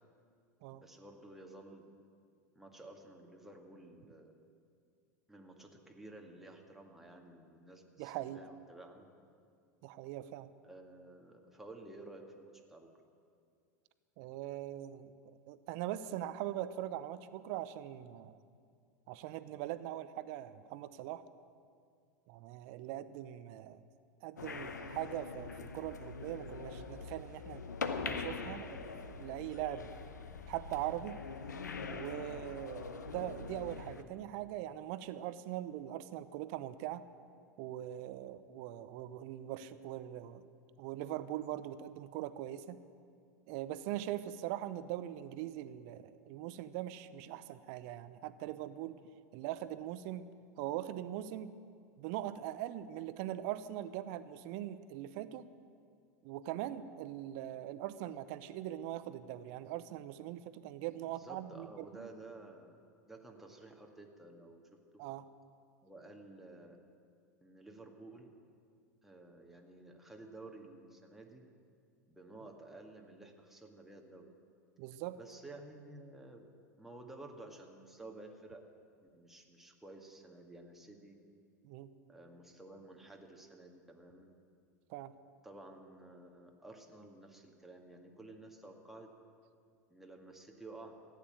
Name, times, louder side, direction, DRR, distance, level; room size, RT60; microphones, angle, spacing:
voice 1, 0.8-1.9 2.6-4.3 5.3-9.1 10.6-13.0 61.1-62.8 63.1-65.0 65.8-66.8 67.4-68.3 69.0-71.5 72.1-74.3 75.2-76.5 76.8-78.7 79.0-81.2 82.1-84.3 85.4-89.1 89.9-90.9, right 2 dB, 5° right, 1 dB, 1.9 m, -53 dB
voice 2, 8.0-8.4 9.8-10.5 14.2-18.4 19.1-21.2 22.3-23.8 24.2-27.6 28.0-29.9 30.5-31.2 31.9-37.0 37.6-40.5 40.8-42.8 43.5-49.0 49.3-50.3 50.6-51.6 52.0-55.5 56.2-62.1 65.0-65.3 74.8-75.2 81.6-81.9 84.9-85.1, right 13 dB, 55° right, 14 dB, 0.7 m, -41 dB
sound 1, 24.4-34.0, left 4 dB, 85° left, 0.9 m, -43 dB
15.0 x 9.3 x 9.0 m, 2.3 s
hypercardioid pair, 90°, 9 cm